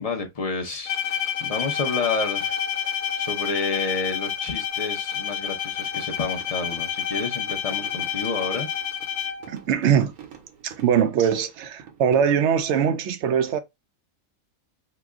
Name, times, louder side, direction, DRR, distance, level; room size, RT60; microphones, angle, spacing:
voice 1, 0.0-8.7, left 4 dB, 40° left, 0.5 m, -30 dB
Bowed string instrument, 0.9-9.6, left 8 dB, 80° left, 1.1 m, -29 dB
sound 1, 5.7-12.3, right 8 dB, 85° right, 1.3 m, -47 dB
voice 2, 9.5-10.1 10.6-13.6, right 8 dB, 65° right, 0.7 m, -22 dB
2.9 x 2.1 x 3.5 m
omnidirectional pair, 1.5 m